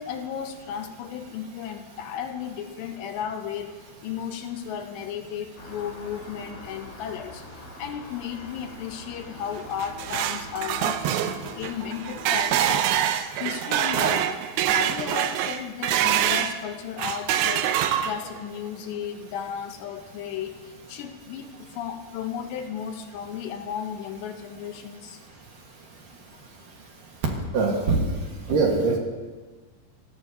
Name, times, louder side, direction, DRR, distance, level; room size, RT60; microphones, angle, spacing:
voice 1, 0.0-12.9 13.4-14.4 14.7-17.7 18.0-25.2, left 8 dB, 80° left, 6 dB, 3.1 m, -34 dB
sound 1, 5.5-12.3, left 2 dB, 50° left, 4.7 m, -44 dB
sound 2, 9.6-16.6 17.0-18.4, right 10 dB, 80° right, 2.5 m, -25 dB
voice 2, 27.5-28.0 28.5-29.0, right 4 dB, 60° right, 0 dB, 2.7 m, -21 dB
29.5 x 15.0 x 2.8 m, 1.4 s
omnidirectional pair, 5.1 m